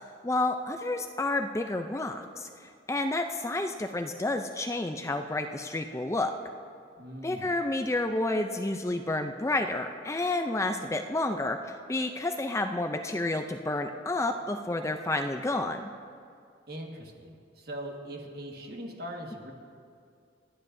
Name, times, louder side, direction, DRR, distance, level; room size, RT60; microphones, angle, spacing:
voice 1, 0.2-2.5 2.9-6.3 7.2-11.6 11.9-15.9, left 2 dB, 15° left, 6 dB, 0.4 m, -30 dB
voice 2, 7.0-7.5 16.7-19.5, right 1 dB, 55° right, 1 dB, 1.6 m, -41 dB
29.0 x 9.7 x 2.6 m, 2.4 s
head